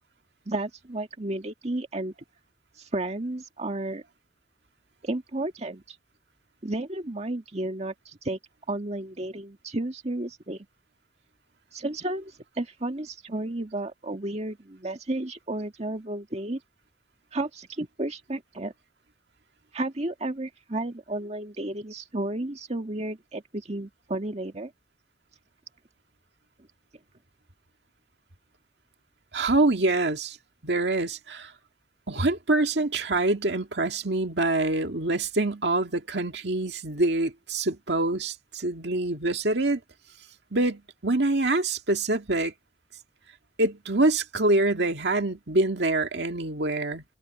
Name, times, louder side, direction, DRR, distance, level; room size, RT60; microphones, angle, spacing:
voice 1, 0.5-2.1 2.8-4.0 5.0-6.0 6.6-8.4 8.7-10.6 11.7-16.6 17.3-18.7 19.7-24.7, right 2 dB, 40° right, 1.9 m, -32 dB
voice 2, 29.3-30.4 30.6-31.5 32.1-39.8 40.5-42.5 43.6-47.0, right 2 dB, 70° right, 2.2 m, -25 dB
head